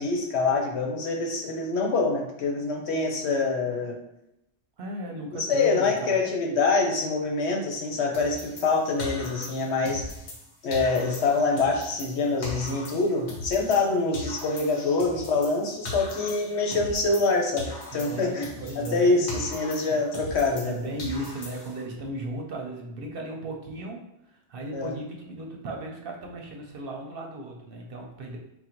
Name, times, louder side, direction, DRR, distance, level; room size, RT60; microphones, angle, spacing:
voice 1, 0.0-4.0 5.4-10.0 10.6-18.5 18.8-20.7 24.7-24.9, left 3 dB, 70° left, 1 dB, 1.0 m, -25 dB
voice 2, 4.8-6.3 17.9-19.5 19.9-20.0 20.6-28.4, right 1 dB, 60° right, 0 dB, 0.8 m, -36 dB
sound 1, 8.1-10.4 10.7-13.9 14.1-17.3 17.6-20.7 21.0-21.8, left 1 dB, 45° left, 0.9 m, -39 dB
3.7 x 2.2 x 4.4 m, 0.84 s
omnidirectional pair, 1.2 m